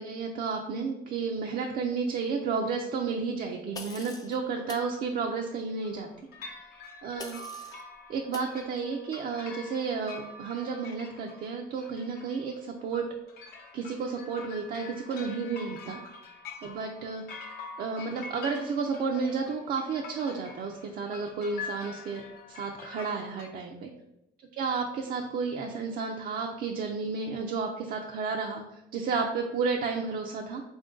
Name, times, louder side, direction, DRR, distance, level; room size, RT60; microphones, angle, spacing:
voice 1, 0.0-6.1 7.0-7.4 8.1-13.1 13.7-16.0 16.6-17.2 17.8-22.2 22.5-23.9 24.6-30.6, right 5 dB, 60° right, 1 dB, 0.5 m, -32 dB
sound 1, 3.7-4.3 4.7-4.9 7.2-7.8 8.3-8.5, left 3 dB, 20° left, 0.5 m, -43 dB
sound 2, 5.8-6.1 6.3-23.5, left 4 dB, 65° left, 0.8 m, -45 dB
4.2 x 2.6 x 3.7 m, 0.87 s
cardioid pair, 110°, 17 cm